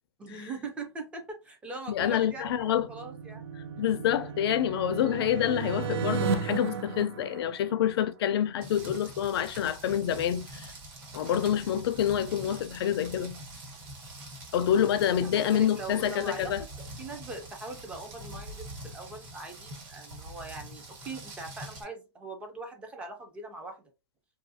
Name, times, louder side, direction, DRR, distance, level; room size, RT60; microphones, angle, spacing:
voice 1, 0.2-3.4 15.3-23.9, right 3 dB, 10° right, 0.3 m, -41 dB
voice 2, 1.9-2.9 3.8-10.7 11.1-13.4 14.5-16.6, left 10 dB, 65° left, 0.4 m, -27 dB
sound 1, 2.3-8.1, right 6 dB, 70° right, 0.5 m, -35 dB
Rain, 8.6-21.8, right 1 dB, 45° right, 1.2 m, -44 dB
2.7 x 2.4 x 2.6 m
supercardioid pair, 165°, 14 cm